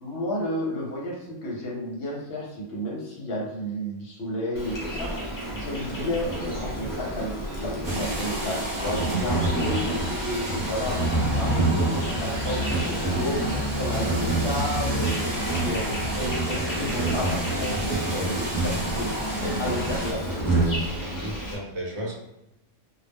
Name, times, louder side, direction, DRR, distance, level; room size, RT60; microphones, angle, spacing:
voice 1, 0.0-17.8 18.1-19.2 19.4-20.4, left 1 dB, 60° left, -3 dB, 0.8 m, -32 dB
Insect, 4.5-21.5, right 2 dB, 25° left, 0.4 m, -28 dB
sound 1, 7.8-20.1, right 1 dB, 45° right, 0.8 m, -33 dB
voice 2, 19.7-20.3 21.2-22.2, equal, 70° right, -2 dB, 0.9 m, -37 dB
2.3 x 2.0 x 3.3 m, 0.90 s
omnidirectional pair, 1.3 m